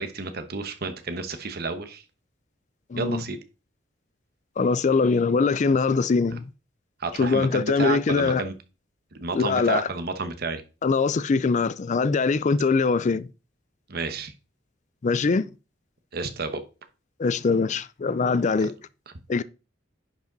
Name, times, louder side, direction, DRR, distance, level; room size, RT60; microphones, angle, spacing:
voice 1, 0.0-2.0 3.0-3.4 7.0-8.5 9.2-10.6 13.9-14.3 16.1-16.6, right 3 dB, 55° right, 1.1 m, -30 dB
voice 2, 2.9-3.2 4.6-6.5 7.2-8.4 9.3-9.9 10.8-13.3 15.0-15.4 17.2-18.8 19.3-19.4, left 4 dB, 40° left, 0.4 m, -22 dB
10.5 x 5.1 x 4.0 m
head